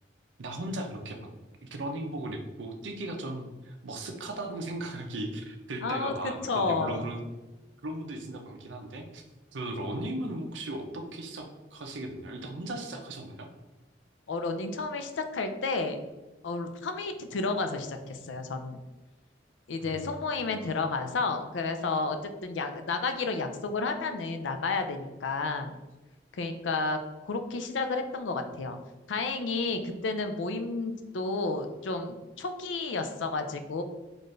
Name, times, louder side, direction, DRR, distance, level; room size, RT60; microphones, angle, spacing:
voice 1, 0.4-1.2 1.6-7.4 7.8-9.2 9.5-13.5 19.8-20.7, right 1 dB, 80° right, 4 dB, 0.6 m, -37 dB
voice 2, 5.8-7.1 14.3-16.0 16.4-18.8 19.7-25.8 26.3-27.0 27.3-28.8 29.1-33.8, left 3 dB, 90° left, 7 dB, 0.5 m, -31 dB
4.0 x 2.5 x 3.2 m, 1.1 s
head